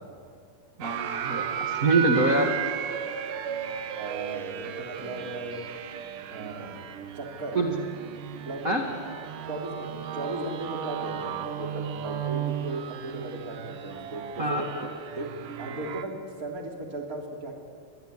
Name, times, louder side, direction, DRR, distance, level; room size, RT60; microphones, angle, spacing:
voice 1, 0.8-2.5 7.5-7.7 8.6-8.8 14.4-14.6, right 2 dB, 50° right, 1 dB, 1.0 m, -24 dB
sound 1, 0.8-16.0, right 9 dB, 65° right, 2.3 m, -35 dB
voice 2, 4.0-5.6 6.3-6.8 7.1-7.6 8.4-8.7 9.5-14.7 15.1-17.6, right 2 dB, 20° right, 1 dB, 3.1 m, -36 dB
23.5 x 20.0 x 10.0 m, 2.2 s
omnidirectional pair, 5.0 m